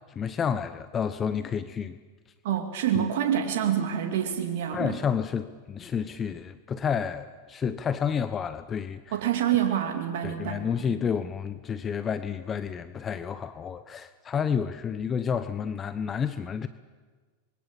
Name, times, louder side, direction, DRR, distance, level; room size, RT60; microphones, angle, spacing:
voice 1, 0.1-2.0 2.9-3.1 4.7-9.2 10.2-16.7, left 7 dB, 30° left, 12 dB, 1.1 m, -30 dB
voice 2, 2.4-5.0 9.1-11.0, right 10 dB, 70° right, 4 dB, 2.4 m, -27 dB
26.0 x 23.0 x 7.3 m, 1.4 s
hypercardioid pair, 100°, 0 cm